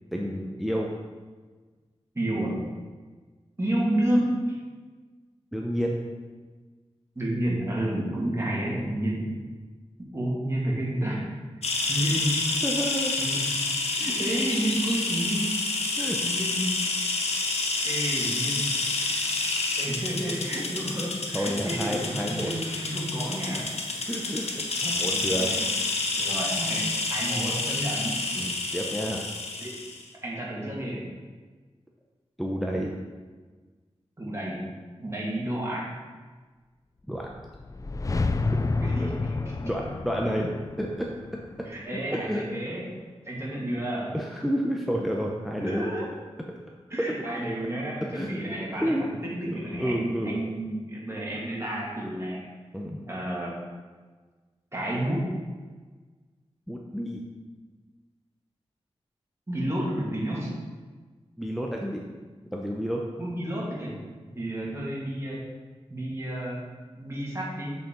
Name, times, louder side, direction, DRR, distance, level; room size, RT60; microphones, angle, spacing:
voice 1, 0.1-0.9 5.5-6.0 12.6-13.1 14.0-14.3 16.0-16.2 21.3-22.5 24.1-25.6 28.4-29.2 32.4-32.9 37.1-37.3 39.6-40.5 40.8-41.2 41.9-42.4 44.1-45.9 47.0-47.1 48.0-49.1 49.5-50.4 52.7-53.0 56.7-57.2 61.4-62.1 62.5-63.0, equal, ahead, -1 dB, 0.7 m, -30 dB
voice 2, 2.1-2.6 3.6-4.6 7.2-9.5 10.1-11.3 11.9-12.4 13.2-13.6 14.0-15.6 16.2-16.8 17.8-18.9 19.8-23.7 25.0-25.6 26.1-28.2 29.6-29.8 30.2-31.1 34.2-34.6 35.0-35.9 38.8-39.6 41.6-42.9 43.2-44.1 45.6-46.1 46.9-52.4 53.1-53.5 54.7-55.3 59.5-60.5 63.2-63.9 64.3-65.4 65.9-66.6 66.9-67.8, right 1 dB, 25° right, -5 dB, 2.1 m, -30 dB
sound 1, 11.6-30.0, left 3 dB, 75° left, 0.9 m, -29 dB
sound 2, 37.3-42.5, left 3 dB, 30° left, 0.4 m, -30 dB
8.0 x 4.4 x 3.9 m, 1.4 s
cardioid pair, 55°, 11 cm